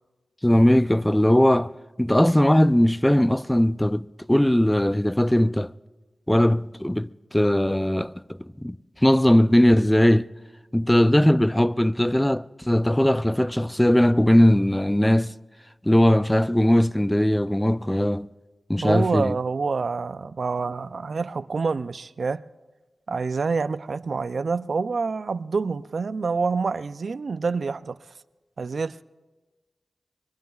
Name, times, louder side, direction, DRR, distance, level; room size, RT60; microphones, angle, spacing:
voice 1, 0.4-1.7 2.0-5.7 6.3-8.1 8.6-8.8 9.0-10.3 10.7-15.3 15.8-18.3 18.7-19.4, left 1 dB, 10° left, 0.4 m, -19 dB
voice 2, 18.8-22.4 23.1-28.0 28.6-29.0, right 4 dB, 75° right, 0.4 m, -27 dB
25.0 x 22.0 x 2.3 m
cardioid pair, 45°, 0 cm